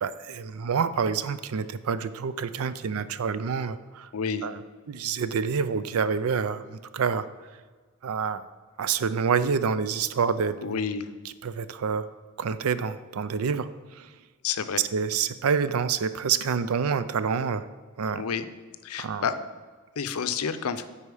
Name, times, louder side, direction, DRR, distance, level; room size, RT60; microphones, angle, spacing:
voice 1, 0.0-4.1 4.4-4.6 4.9-7.3 8.0-8.4 8.8-10.8 11.4-12.1 12.4-13.7 14.0-14.1 14.8-17.7 18.0-18.3 19.0-19.3, right 6 dB, 80° right, 13 dB, 0.5 m, -27 dB
voice 2, 4.1-4.5 10.6-11.1 14.4-14.8 18.2-18.5 18.8-19.4 20.0-20.8, left 6 dB, 90° left, 11 dB, 0.5 m, -29 dB
9.8 x 4.2 x 4.8 m, 1.4 s
head